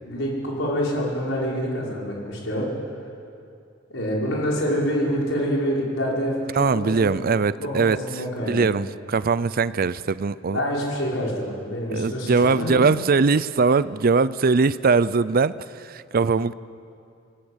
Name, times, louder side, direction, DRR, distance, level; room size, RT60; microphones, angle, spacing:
voice 1, 0.0-2.7 3.9-7.1 7.6-8.6 10.5-12.8, equal, 85° left, -3 dB, 5.7 m, -26 dB
voice 2, 6.5-10.6 11.9-16.5, right 4 dB, 50° right, 17 dB, 0.5 m, -21 dB
26.5 x 17.0 x 8.2 m, 2.5 s
head